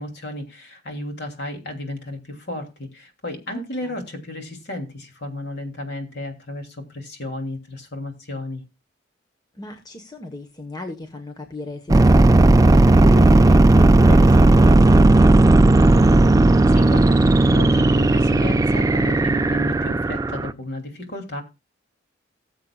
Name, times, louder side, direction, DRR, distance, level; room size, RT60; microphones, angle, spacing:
voice 1, 0.0-8.6 16.7-21.4, left 1 dB, 60° left, 2.8 m, -33 dB
voice 2, 3.5-3.9 9.5-16.0, left 2 dB, 20° left, 1.2 m, -34 dB
sound 1, 11.9-20.5, right 2 dB, 20° right, 0.4 m, -14 dB
19.0 x 7.6 x 2.4 m
head